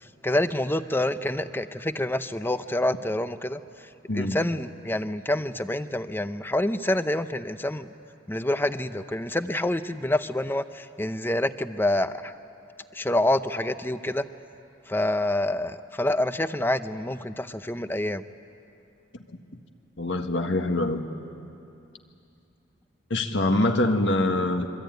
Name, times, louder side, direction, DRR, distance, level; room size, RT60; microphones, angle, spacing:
voice 1, 0.0-7.9 8.3-12.3 12.9-14.3 14.9-18.2, left 1 dB, 10° left, 11 dB, 0.6 m, -27 dB
voice 2, 20.0-21.0 23.1-24.7, left 2 dB, 65° left, 5 dB, 1.7 m, -24 dB
26.0 x 24.0 x 9.3 m, 2.7 s
head